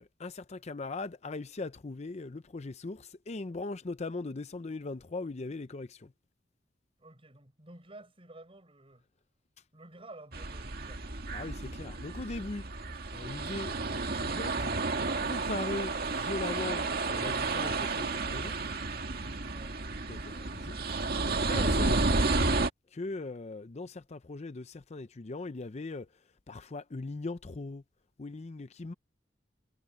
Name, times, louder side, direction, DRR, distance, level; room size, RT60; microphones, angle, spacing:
voice 1, 0.0-6.1 11.3-12.6 13.1-14.7 15.2-18.6 20.1-20.8 21.5-22.5 22.9-26.1 26.5-27.8 28.2-28.9, left 3 dB, 40° left, 0.6 m, -39 dB
voice 2, 7.0-9.0 9.7-11.0 19.4-19.8, right 2 dB, 30° right, 7.6 m, -51 dB
sound 1, 10.3-22.7, right 3 dB, 55° right, 2.0 m, -31 dB
head